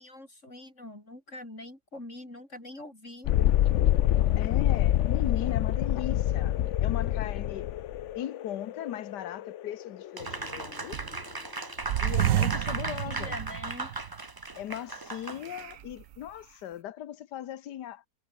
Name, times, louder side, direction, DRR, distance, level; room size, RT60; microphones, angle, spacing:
voice 1, 0.0-3.3 12.5-12.7 12.9-13.9, left 1 dB, 45° left, 7.4 m, -44 dB
Thunderstorm, 3.2-10.7, left 12 dB, 65° left, 0.7 m, -26 dB
voice 2, 4.4-7.7 8.1-11.0 12.0-13.4 14.5-18.0, left 11 dB, 85° left, 1.6 m, -38 dB
Applause, 10.2-15.7, right 2 dB, 15° right, 0.9 m, -37 dB
sound 1, 10.2-11.3 11.8-14.2 14.6-14.7 15.4-16.2, right 12 dB, 65° right, 0.9 m, -30 dB
omnidirectional pair, 1.8 m